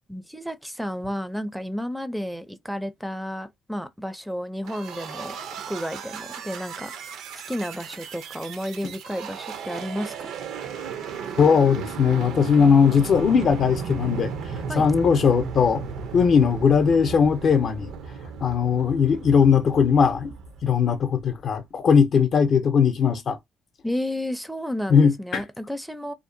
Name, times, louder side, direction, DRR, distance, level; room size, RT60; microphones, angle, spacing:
voice 1, 0.1-7.2 7.5-10.3 14.7-14.8 23.8-26.1, equal, ahead, 0.4 m, -32 dB
sound 1, 4.6-21.3, right 6 dB, 90° right, 0.5 m, -35 dB
voice 2, 11.4-14.3 14.7-15.8 16.1-17.9 18.4-20.3 20.6-23.4 24.9-25.4, left 6 dB, 60° left, 0.5 m, -19 dB
2.6 x 2.1 x 2.6 m
cardioid pair, 90°, 0 cm